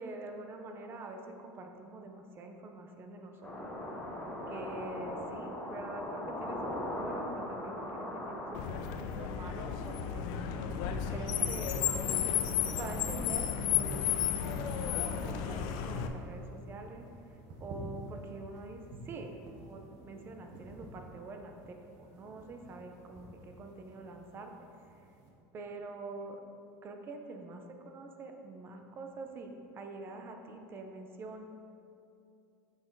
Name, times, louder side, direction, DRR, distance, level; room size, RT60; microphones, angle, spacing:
voice 1, 0.0-3.7 4.5-8.6 8.9-10.3 11.1-11.9 12.2-17.0 17.3-24.5 25.5-26.4 26.8-31.4, right 2 dB, 25° right, 4 dB, 0.6 m, -45 dB
sound 1, 3.4-8.6, left 1 dB, 10° left, 1.2 m, -39 dB
Car, 8.5-16.1, left 9 dB, 50° left, 0.5 m, -33 dB
sound 2, 12.3-25.3, right 1 dB, 40° right, 1.1 m, -51 dB
6.5 x 6.1 x 4.6 m, 2.7 s
cardioid pair, 165°, 9 cm